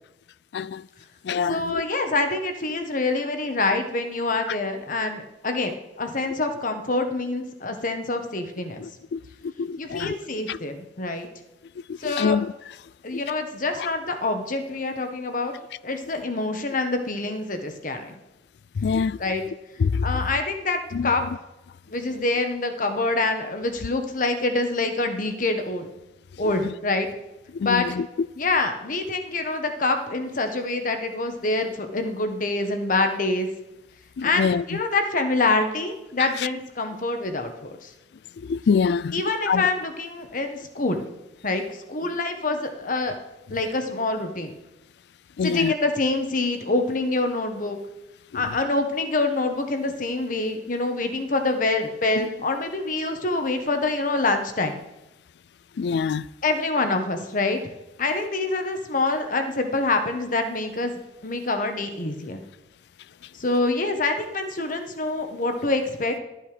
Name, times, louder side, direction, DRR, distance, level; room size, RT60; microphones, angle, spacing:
voice 1, 0.5-0.9 1.2-1.8 8.8-10.2 10.5-10.6 11.9-12.5 13.1-13.2 13.8-13.9 18.8-19.2 19.8-20.1 20.9-21.1 27.5-28.1 34.2-34.8 36.4-36.5 38.4-39.7 42.1-42.2 45.4-45.7 48.3-48.4 52.2-52.3 55.8-56.3, left 5 dB, 70° left, 0.3 m, -25 dB
voice 2, 1.5-5.7 6.0-8.8 9.8-11.3 12.0-12.4 13.0-15.5 15.8-18.2 19.2-19.4 20.0-21.2 21.9-25.9 26.4-27.1 27.6-27.9 28.4-33.5 34.2-37.9 39.1-41.0 41.4-43.1 43.5-44.5 45.4-47.8 48.3-54.8 56.4-57.6 58.0-60.9 61.2-62.4 63.3-66.2, left 3 dB, 50° left, 1.4 m, -26 dB
13.0 x 9.2 x 5.1 m
head